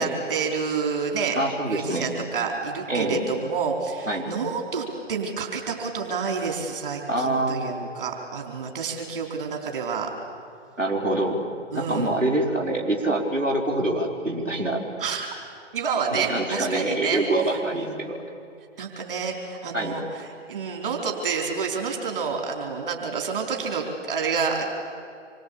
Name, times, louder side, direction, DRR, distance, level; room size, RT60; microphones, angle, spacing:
voice 1, 0.0-1.4 1.7-10.1 11.7-12.2 15.0-15.3 15.7-18.1 18.8-24.6, right 5 dB, 45° right, 1 dB, 4.5 m, -29 dB
voice 2, 1.3-2.1 2.9-3.2 4.1-4.3 7.1-7.9 10.8-11.4 11.7-14.8 16.1-18.2 19.7-19.9, right 1 dB, 80° right, 0 dB, 4.8 m, -25 dB
27.0 x 24.0 x 8.7 m, 2.4 s
figure-of-eight pair, 140°, 37 cm